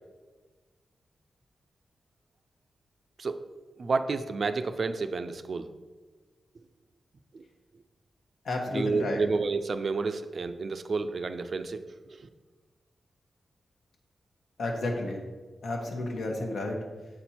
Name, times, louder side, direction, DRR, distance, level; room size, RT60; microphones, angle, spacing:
voice 1, 3.8-5.7 7.3-7.4 8.7-12.3, right 4 dB, 50° right, 10 dB, 0.4 m, -30 dB
voice 2, 8.4-9.2 14.6-15.2 15.6-16.8, left 2 dB, 80° left, 2 dB, 1.1 m, -31 dB
7.4 x 4.3 x 4.3 m, 1.4 s
wide cardioid pair, 140°, 0 cm